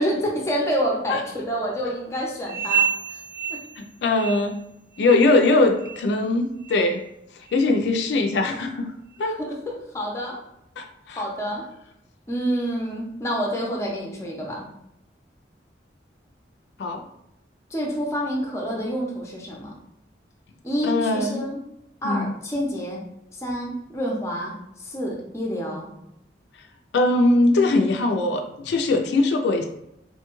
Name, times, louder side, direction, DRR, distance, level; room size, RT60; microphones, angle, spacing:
voice 1, 0.0-3.2 3.5-3.6 9.4-10.4 11.1-11.6 12.3-14.7 17.7-19.7 20.6-21.6 22.0-23.0 23.4-24.5 24.8-25.9, equal, 15° left, -1 dB, 0.5 m, -28 dB
sound 1, 2.5-4.7 4.9-5.3 5.8-6.0 6.6-6.8 7.5-7.6 8.3-8.4, right 7 dB, 60° right, 0.7 m, -29 dB
voice 2, 3.8-4.6 5.0-7.0 7.5-8.9 9.2-9.4 10.8-11.2 16.8-17.0 20.8-21.4 22.0-22.3 26.9-29.6, left 2 dB, 75° left, 4 dB, 0.3 m, -21 dB
3.1 x 2.2 x 3.0 m, 0.83 s
head